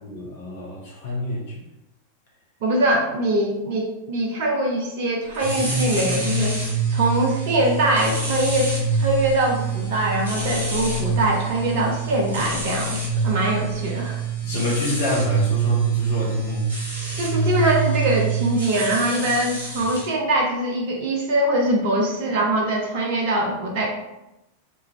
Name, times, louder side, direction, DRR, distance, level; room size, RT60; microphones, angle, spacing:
voice 1, 0.0-1.5 14.4-16.7, left 1 dB, 55° left, -4 dB, 0.8 m, -27 dB
voice 2, 2.6-14.2 17.2-23.9, right 1 dB, 50° right, 1 dB, 0.5 m, -23 dB
sound 1, 5.3-20.1, right 4 dB, 70° right, 1.0 m, -25 dB
3.3 x 2.4 x 3.1 m, 0.93 s
figure-of-eight pair, 90°, 0 cm